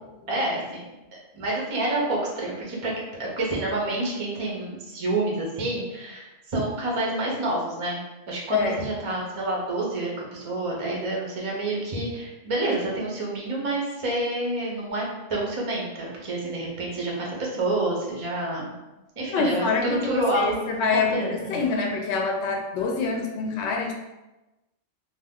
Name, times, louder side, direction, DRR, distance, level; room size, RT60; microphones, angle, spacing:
voice 1, 0.3-2.9 3.2-15.0 15.3-18.7 19.2-20.6 20.9-21.6, right 2 dB, 40° right, -3 dB, 0.5 m, -28 dB
voice 2, 8.5-8.8 19.3-23.9, left 4 dB, 65° left, 1 dB, 0.8 m, -26 dB
2.5 x 2.2 x 3.5 m, 1.0 s
omnidirectional pair, 1.3 m